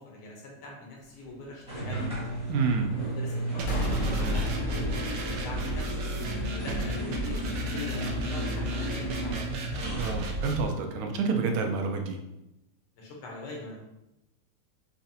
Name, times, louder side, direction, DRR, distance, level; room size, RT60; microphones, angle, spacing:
voice 1, 0.0-2.4 3.0-6.0 6.5-9.4 13.0-13.8, left 2 dB, 85° left, -1 dB, 1.8 m, -42 dB
sound 1, 1.7-10.2, right 2 dB, 5° right, 0.8 m, -34 dB
voice 2, 2.5-3.0 9.9-12.2, right 5 dB, 90° right, 4 dB, 1.5 m, -28 dB
sound 2, 3.6-10.6, right 1 dB, 75° right, 1.1 m, -33 dB
sound 3, 3.7-6.2, left 2 dB, 65° left, 1.2 m, -33 dB
5.1 x 2.4 x 2.7 m, 0.91 s
omnidirectional pair, 2.4 m